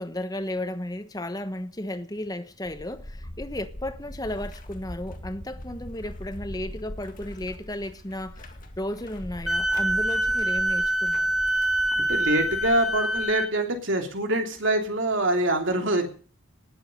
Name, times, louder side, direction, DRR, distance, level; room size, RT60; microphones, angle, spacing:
voice 1, 0.0-11.3, left 1 dB, 15° left, 1.1 m, -34 dB
sound 1, 2.6-13.4, left 1 dB, 40° left, 2.1 m, -42 dB
Wind instrument woodwind instrument, 9.5-13.5, right 1 dB, ahead, 1.5 m, -25 dB
voice 2, 11.9-16.1, right 1 dB, 65° right, 3.0 m, -25 dB
19.0 x 8.7 x 6.6 m
head